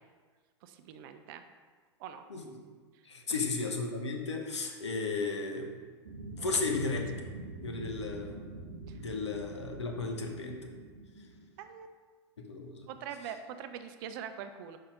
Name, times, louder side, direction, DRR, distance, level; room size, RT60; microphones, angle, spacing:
voice 1, 0.6-1.4 2.0-2.2 2.9-3.4 6.4-6.6 8.9-9.0 11.6-11.9 12.9-14.8, right 8 dB, 50° right, 9 dB, 0.6 m, -44 dB
voice 2, 3.0-5.7 6.4-7.2 7.6-8.4 8.9-10.7 12.4-12.9, left 4 dB, 85° left, 2 dB, 1.0 m, -34 dB
sound 1, 6.0-11.6, right 3 dB, 80° right, 0.9 m, -45 dB
5.7 x 5.4 x 3.8 m, 1.5 s
hypercardioid pair, 100°, 15 cm